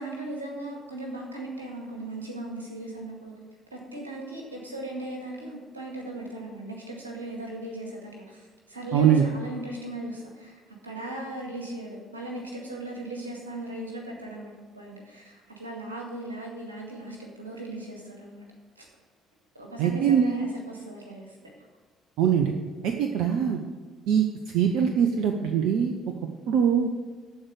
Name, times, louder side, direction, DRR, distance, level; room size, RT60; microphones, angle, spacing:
voice 1, 0.0-3.3 3.7-18.5 18.8-18.9 19.5-21.4, right 2 dB, 80° right, -1 dB, 2.0 m, -38 dB
voice 2, 8.9-9.2 19.8-20.3 22.2-22.5 22.8-23.6 24.1-24.2 24.5-25.9 26.5-26.9, right 8 dB, 60° right, 5 dB, 0.7 m, -22 dB
14.0 x 4.7 x 8.0 m, 1.4 s
figure-of-eight pair, 50°, 0 cm